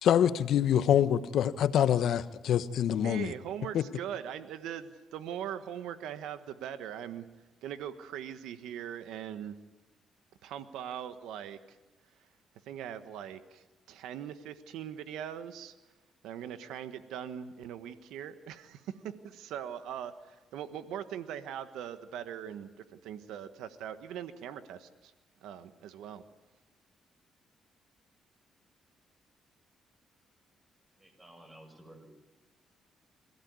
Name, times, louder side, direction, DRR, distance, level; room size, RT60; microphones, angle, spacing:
voice 1, 0.0-3.3 3.7-3.8, left 9 dB, 75° left, 13 dB, 1.0 m, -25 dB
voice 2, 3.0-7.2 7.6-9.5 10.4-11.8 12.7-15.7 16.2-25.1 25.4-26.2, right 9 dB, 90° right, 11 dB, 1.4 m, -41 dB
voice 3, 31.0-32.1, right 1 dB, 15° right, 5 dB, 7.4 m, -53 dB
27.0 x 16.5 x 9.6 m, 1.1 s
cardioid pair, 90°, 0 cm